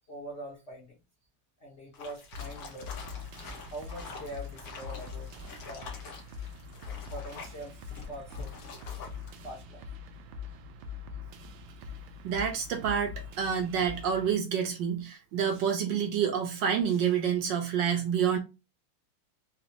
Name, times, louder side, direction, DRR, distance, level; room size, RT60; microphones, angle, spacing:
voice 1, 0.1-1.0 1.6-3.0 3.7-5.3 5.6-6.0 7.1-7.8 8.1-8.5 9.4-9.9, right 1 dB, 80° left, 0.6 m, -43 dB
sound 1, 1.9-9.4, left 3 dB, 55° left, 1.1 m, -46 dB
sound 2, 2.3-14.3, left 6 dB, 90° right, 0.9 m, -43 dB
voice 2, 12.2-18.4, right 7 dB, 65° right, 1.2 m, -28 dB
4.0 x 2.1 x 2.7 m
omnidirectional pair, 2.4 m